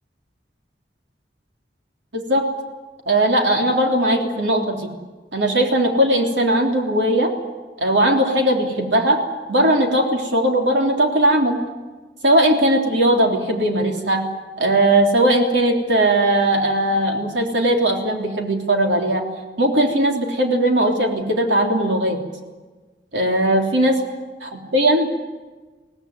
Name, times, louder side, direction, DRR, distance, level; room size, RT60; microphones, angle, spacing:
voice 1, 3.1-4.9 5.3-7.3 7.8-9.2 9.5-11.6 12.2-14.2 14.6-19.2 19.6-22.2 23.1-24.0 24.4-25.1, right 1 dB, 90° right, 2 dB, 3.5 m, -18 dB
23.5 x 18.0 x 9.6 m, 1.3 s
head